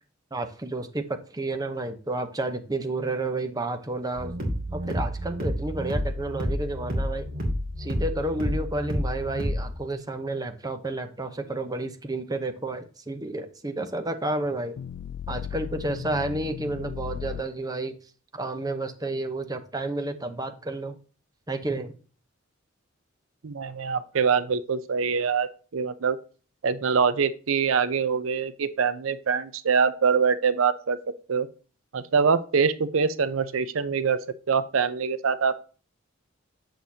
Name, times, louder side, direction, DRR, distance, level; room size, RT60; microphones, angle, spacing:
voice 1, 0.3-4.4 4.7-7.3 7.8-14.8 15.3-18.0 18.3-21.0 21.5-21.9, right 2 dB, 20° right, 7 dB, 0.8 m, -31 dB
sound 1, 4.2-9.8, equal, 50° right, 2.4 m, -29 dB
sound 2, 14.8-17.4, left 9 dB, 70° left, 0.3 m, -36 dB
voice 2, 23.4-26.2 26.6-31.0 31.3-31.5 31.9-34.2 34.5-35.6, right 6 dB, 85° right, 13 dB, 0.6 m, -24 dB
7.7 x 6.6 x 2.8 m, 0.38 s
head